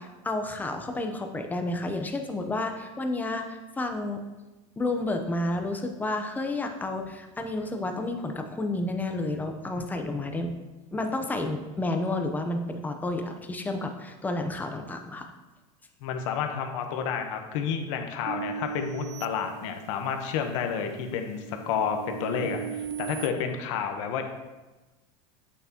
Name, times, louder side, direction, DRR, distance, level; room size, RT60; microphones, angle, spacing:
voice 1, 0.0-4.2 4.8-10.5 10.9-15.3, left 2 dB, 10° left, 5 dB, 0.7 m, -31 dB
voice 2, 16.0-24.3, left 7 dB, 70° left, 5 dB, 1.1 m, -30 dB
sound 1, 18.3-20.2 20.7-23.3, right 8 dB, 40° right, 0.5 m, -38 dB
8.6 x 7.0 x 2.9 m, 1.1 s
supercardioid pair, 140°, 17 cm